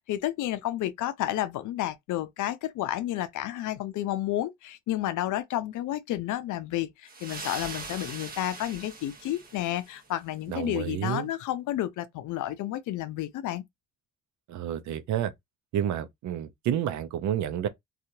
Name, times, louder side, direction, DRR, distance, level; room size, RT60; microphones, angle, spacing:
voice 1, 0.1-13.6, left 13 dB, 75° left, 0.5 m, -31 dB
sound 1, 7.1-10.1, right 3 dB, 30° right, 1.0 m, -41 dB
voice 2, 10.5-11.3 14.5-15.3 15.7-17.7, right 10 dB, 70° right, 0.6 m, -30 dB
2.8 x 2.4 x 2.6 m
cardioid pair, 90°, 30 cm